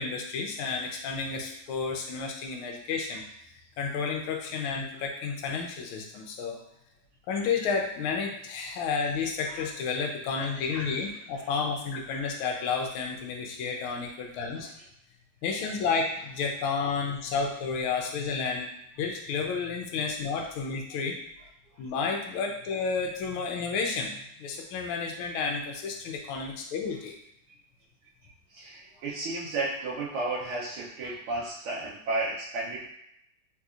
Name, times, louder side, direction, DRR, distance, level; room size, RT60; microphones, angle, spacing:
voice 1, 0.0-3.2 3.8-6.6 7.3-14.7 15.4-18.7 19.0-21.2 21.8-24.1 24.4-27.1, left 5 dB, 80° left, 1 dB, 1.4 m, -31 dB
voice 2, 28.2-32.9, right 2 dB, 85° right, -7 dB, 1.6 m, -34 dB
4.0 x 2.8 x 2.4 m, 0.78 s
omnidirectional pair, 2.3 m